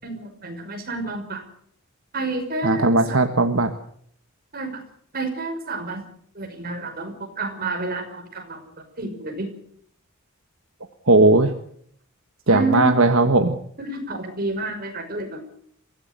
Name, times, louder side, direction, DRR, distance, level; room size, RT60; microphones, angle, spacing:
voice 1, 0.0-1.4 2.1-3.2 4.5-4.8 5.1-6.0 6.3-8.6 9.0-9.5 12.5-12.9 13.8-15.4, right 2 dB, 45° right, 4 dB, 5.7 m, -29 dB
voice 2, 2.6-3.7 11.1-11.5 12.5-13.6, right 2 dB, 75° right, 6 dB, 1.5 m, -17 dB
24.0 x 16.5 x 8.2 m, 0.65 s
head